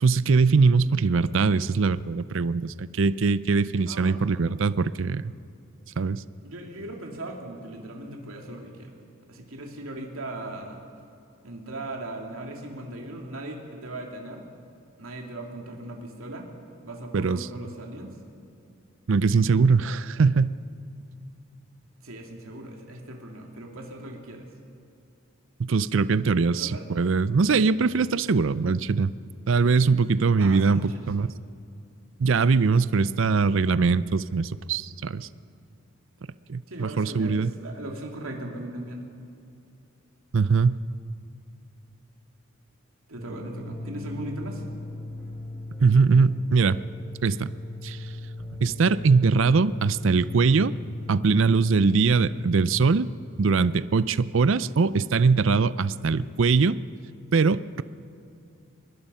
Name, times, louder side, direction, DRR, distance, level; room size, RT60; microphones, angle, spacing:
voice 1, 0.0-5.3 6.0-6.2 17.1-17.4 19.1-20.5 25.6-29.1 29.5-31.3 32.2-35.3 36.5-37.5 40.3-40.8 45.8-46.8 47.2-47.5 47.8-48.0 48.6-50.7 51.1-53.1 53.4-56.8 57.3-57.8, right 4 dB, 65° right, 16 dB, 0.5 m, -22 dB
voice 2, 3.9-4.2 6.4-8.9 9.3-10.8 11.4-14.4 15.0-16.5 16.8-18.1 22.0-24.5 26.5-26.8 30.4-31.1 36.7-39.1 43.1-44.6, right 1 dB, 85° right, 1 dB, 2.7 m, -38 dB
sound 1, 43.2-52.9, left 1 dB, ahead, 6.3 m, -37 dB
23.5 x 20.5 x 5.6 m, 2.6 s
head